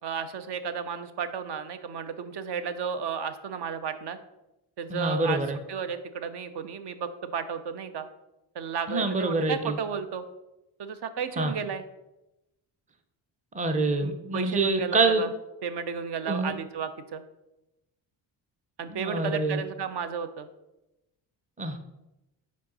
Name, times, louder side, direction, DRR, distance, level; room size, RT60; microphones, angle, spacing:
voice 1, 0.0-4.2 4.8-5.4 5.7-8.1 8.5-10.2 10.8-11.8 14.0-15.3 15.6-17.2 18.8-20.5, right 6 dB, 60° right, 10 dB, 0.7 m, -33 dB
voice 2, 4.9-5.6 8.9-9.8 11.4-11.5 13.5-15.2 16.3-16.6 18.9-19.6 21.6-21.8, right 3 dB, 15° right, 6 dB, 0.6 m, -26 dB
5.2 x 4.6 x 4.1 m, 0.94 s
cardioid pair, 75°, 47 cm